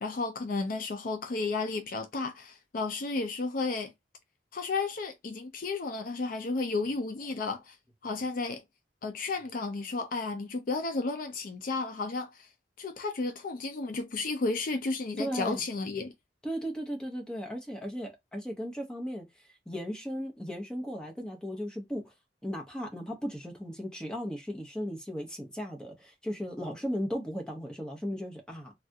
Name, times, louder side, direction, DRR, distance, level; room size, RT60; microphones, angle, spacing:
voice 1, 0.0-3.9 4.5-7.8 8.0-8.6 9.0-12.5 12.8-16.1, left 3 dB, 50° left, 0.4 m, -33 dB
voice 2, 15.2-15.6 16.4-19.2 19.7-22.1 22.4-28.7, equal, 5° left, 0.8 m, -36 dB
3.3 x 2.4 x 2.6 m
head